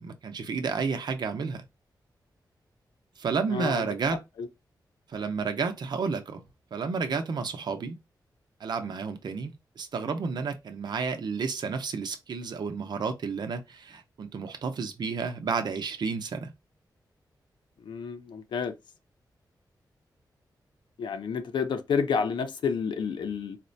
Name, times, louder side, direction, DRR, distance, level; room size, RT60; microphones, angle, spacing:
voice 1, 0.0-1.6 3.2-4.2 5.1-6.4 6.7-8.0 8.6-16.5, right 5 dB, 70° right, 0.7 m, -31 dB
voice 2, 3.5-3.9 4.4-4.5 17.8-18.7 21.0-23.6, left 6 dB, 85° left, 0.6 m, -30 dB
4.2 x 2.1 x 2.6 m
wide cardioid pair, 110°, 8 cm